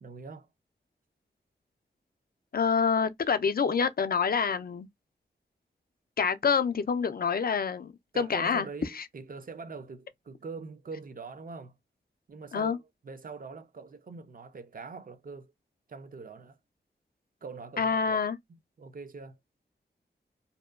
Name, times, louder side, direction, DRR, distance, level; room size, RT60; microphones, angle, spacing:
voice 1, 0.0-0.5 8.1-11.7 12.3-15.5 15.9-16.6 17.4-18.2 18.5-19.4, right 4 dB, 50° right, 0.5 m, -43 dB
voice 2, 2.5-4.9 6.2-8.7 8.9-9.0 12.5-12.8 17.8-18.4, left 6 dB, 55° left, 0.4 m, -27 dB
2.7 x 2.2 x 2.3 m
wide cardioid pair, 60°, 19 cm